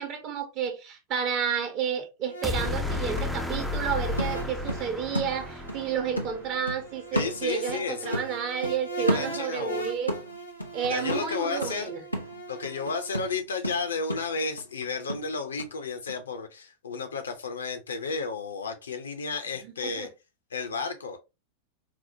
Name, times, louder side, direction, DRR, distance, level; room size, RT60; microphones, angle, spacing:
voice 1, 0.0-10.1 10.7-12.0 19.6-20.1, right 7 dB, 40° right, 0.8 m, -31 dB
sound 1, 2.2-2.3 2.7-5.8 6.2-9.7 10.1-15.7 16.1-16.2, equal, 90° right, 0.6 m, -34 dB
sound 2, 2.3-13.3, right 3 dB, 85° left, 1.0 m, -40 dB
sound 3, 2.4-6.7, left 3 dB, ahead, 0.4 m, -33 dB
voice 2, 7.1-8.2 9.0-9.9 10.9-11.9 12.5-20.1 20.5-21.2, left 4 dB, 70° left, 0.5 m, -32 dB
4.2 x 2.1 x 2.6 m
figure-of-eight pair, 90°, 0 cm